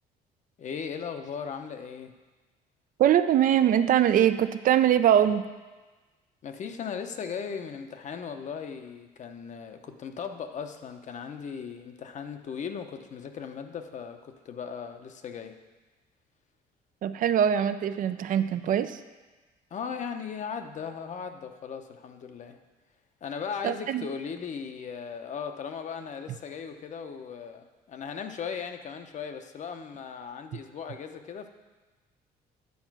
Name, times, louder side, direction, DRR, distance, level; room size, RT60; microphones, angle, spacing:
voice 1, 0.6-2.1 6.4-15.6 19.7-22.6 23.2-31.5, left 6 dB, 45° left, 7 dB, 0.7 m, -37 dB
voice 2, 3.0-5.4 17.0-19.0 23.6-24.1, right 10 dB, 55° right, 11 dB, 0.4 m, -22 dB
9.5 x 4.4 x 6.0 m, 1.3 s
cardioid pair, 110°, 17 cm